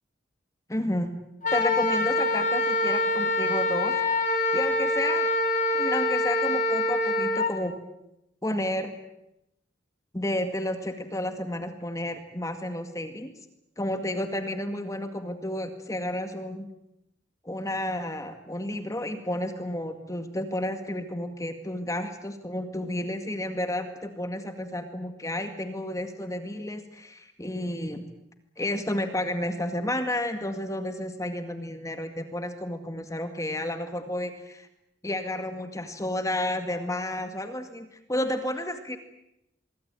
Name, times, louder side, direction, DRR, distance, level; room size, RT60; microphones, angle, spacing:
voice 1, 0.7-1.1 1.5-4.0 4.5-5.3 5.7-7.8 8.4-8.9 10.1-13.3 13.8-16.7 17.4-28.1 28.6-34.7 35.0-39.0, left 1 dB, 20° left, 8 dB, 2.0 m, -31 dB
Wind instrument woodwind instrument, 1.4-7.5, left 2 dB, 45° left, 4.0 m, -25 dB
25.0 x 23.5 x 9.0 m, 0.85 s
head